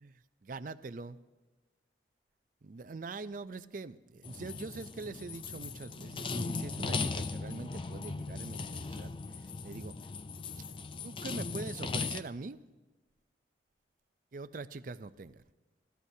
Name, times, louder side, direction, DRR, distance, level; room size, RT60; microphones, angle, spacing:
voice 1, 0.0-1.2 2.6-9.1 9.4-9.9 11.0-12.6 14.3-15.4, right 3 dB, 45° right, 14 dB, 0.4 m, -43 dB
sound 1, 4.2-12.2, left 4 dB, 25° left, 0.4 m, -38 dB
27.5 x 14.5 x 2.8 m, 1.2 s
head